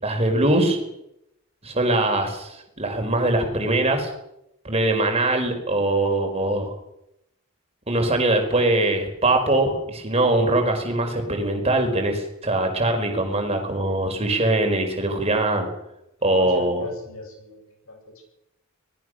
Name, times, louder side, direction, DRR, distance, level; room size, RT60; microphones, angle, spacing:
voice 1, 0.0-0.8 1.6-4.1 4.6-6.7 7.9-15.7 16.2-16.9, right 2 dB, 30° right, 4 dB, 4.8 m, -22 dB
voice 2, 16.2-18.2, left 1 dB, 75° left, 3 dB, 7.8 m, -40 dB
24.5 x 19.0 x 6.5 m, 0.83 s
head